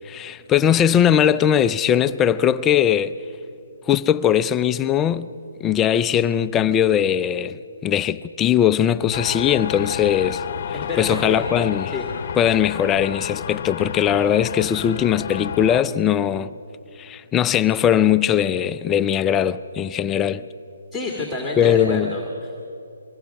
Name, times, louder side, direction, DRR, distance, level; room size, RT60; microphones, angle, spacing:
voice 1, 0.1-3.1 3.9-5.3 5.6-7.6 7.8-10.4 11.0-11.9 12.4-16.5 17.0-20.4 21.6-22.1, left 9 dB, 15° left, 0.4 m, -20 dB
sound 1, 9.1-15.8, left 8 dB, 50° left, 0.8 m, -31 dB
voice 2, 10.9-11.5 11.9-12.1 20.9-22.6, left 2 dB, ahead, 2.0 m, -28 dB
23.5 x 20.5 x 5.9 m
hypercardioid pair, 150°, 0 cm